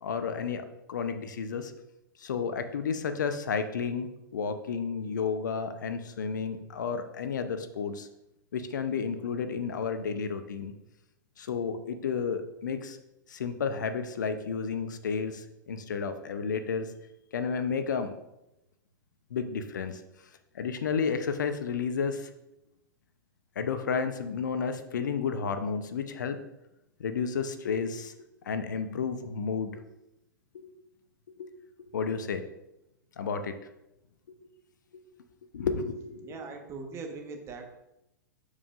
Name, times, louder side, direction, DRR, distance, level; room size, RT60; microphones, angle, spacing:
voice 1, 0.0-1.7 2.2-4.1 4.3-8.1 8.5-10.7 11.4-13.0 13.3-16.9 17.3-18.1 19.3-20.0 20.5-22.3 23.6-26.4 27.0-28.1 28.4-29.8 30.5-30.7 31.4-31.5 31.9-32.4 33.2-33.5 34.9-35.0 35.5-36.4, left 6 dB, 65° left, 9 dB, 0.7 m, -32 dB
voice 2, 36.2-37.7, right 4 dB, 25° right, 3 dB, 1.2 m, -41 dB
12.0 x 4.9 x 2.5 m, 0.89 s
figure-of-eight pair, 100°, 11 cm